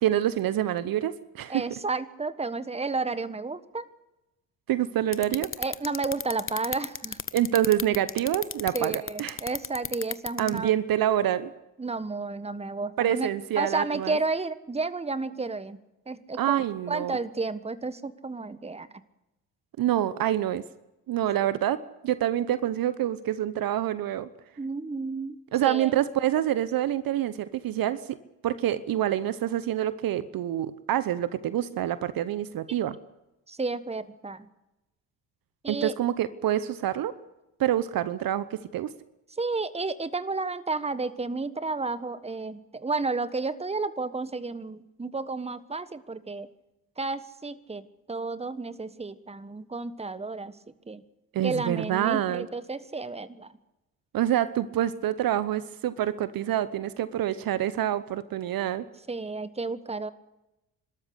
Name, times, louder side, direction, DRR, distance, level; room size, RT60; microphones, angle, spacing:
voice 1, 0.0-1.6 4.7-5.5 7.3-9.4 10.4-11.5 13.0-14.2 16.4-17.2 19.8-20.6 21.1-24.3 25.5-28.2 28.4-33.0 35.7-37.2 37.6-38.9 51.3-52.5 54.1-58.9, right 12 dB, 55° right, 15 dB, 1.0 m, -27 dB
voice 2, 1.5-3.9 5.6-7.2 8.7-10.7 11.8-13.3 13.6-15.8 16.1-18.9 24.6-25.9 33.5-34.5 35.6-35.9 39.3-46.5 47.0-50.6 50.9-51.0 51.4-53.5 59.1-60.1, right 3 dB, 15° right, 14 dB, 1.4 m, -32 dB
sound 1, 5.1-10.6, left 7 dB, 30° left, 1.1 m, -32 dB
29.0 x 13.0 x 8.4 m, 0.96 s
hypercardioid pair, 50°, 42 cm